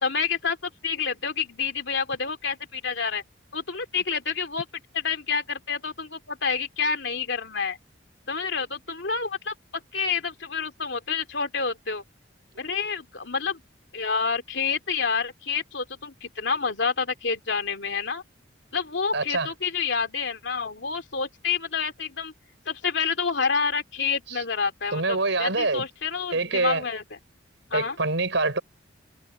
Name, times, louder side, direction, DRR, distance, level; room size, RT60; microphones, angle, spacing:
voice 1, 0.0-3.2 3.5-4.7 4.9-7.8 8.3-9.5 9.9-12.0 12.6-13.6 13.9-18.2 18.7-22.3 22.7-27.0 27.7-28.0, left 5 dB, 65° left, 3.1 m, -28 dB
voice 2, 19.1-19.5 24.3-24.4 24.9-25.8 26.3-26.8 27.7-28.6, right 3 dB, 75° right, 5.4 m, -25 dB
head